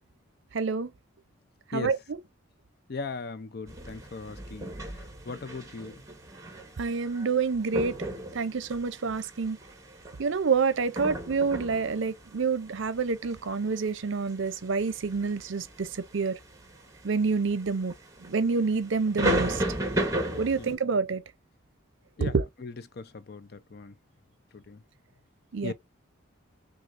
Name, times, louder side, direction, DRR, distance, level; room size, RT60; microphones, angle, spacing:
voice 1, 0.5-0.9 1.7-2.0 6.8-7.9 8.3-9.6 10.2-16.4 17.0-17.9 18.2-19.6 20.4-21.2 22.2-22.4 25.5-25.7, right 4 dB, 70° right, 0.6 m, -27 dB
voice 2, 2.9-6.0 8.5-8.7 20.6-21.0 22.2-23.9 24.5-24.8 25.6-25.7, left 4 dB, 50° left, 0.5 m, -39 dB
sound 1, 3.7-20.7, right 1 dB, 15° right, 1.0 m, -35 dB
6.1 x 2.4 x 2.5 m
head